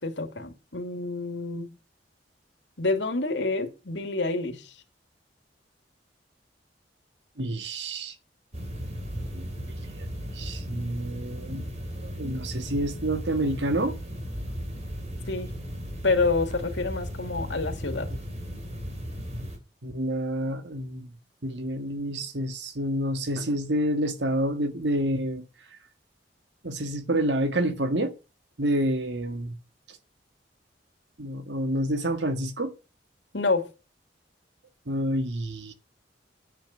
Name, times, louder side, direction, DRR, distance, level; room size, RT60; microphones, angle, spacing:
voice 1, 0.0-1.7 2.8-4.7 15.3-15.5 16.0-18.1 33.3-33.7, left 3 dB, 75° left, 2.5 m, -28 dB
voice 2, 7.4-8.1 9.1-9.5 10.0-10.1 10.4-11.7 12.0-14.0 19.8-21.1 21.4-25.5 26.6-28.1 28.6-29.6 31.2-32.7 34.9-35.7, right 1 dB, 70° right, 1.7 m, -28 dB
sound 1, 8.5-19.6, equal, 40° right, 3.2 m, -36 dB
10.0 x 9.0 x 6.6 m
head